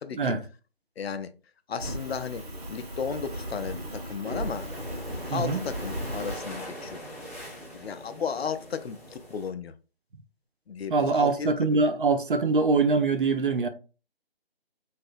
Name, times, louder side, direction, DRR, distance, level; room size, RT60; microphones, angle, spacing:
voice 1, 0.0-0.3 1.0-1.3 1.7-2.4 2.7-4.7 5.3-7.0 7.7-9.7 10.7-11.9, left 6 dB, 80° left, 0.5 m, -34 dB
Fire, 1.8-6.4, right 1 dB, 75° right, 1.6 m, -36 dB
sound 1, 4.4-9.5, equal, 15° left, 0.6 m, -42 dB
voice 2, 5.3-5.6 10.9-13.7, right 3 dB, 55° right, 0.5 m, -23 dB
3.3 x 2.7 x 2.4 m
figure-of-eight pair, 170°, 31 cm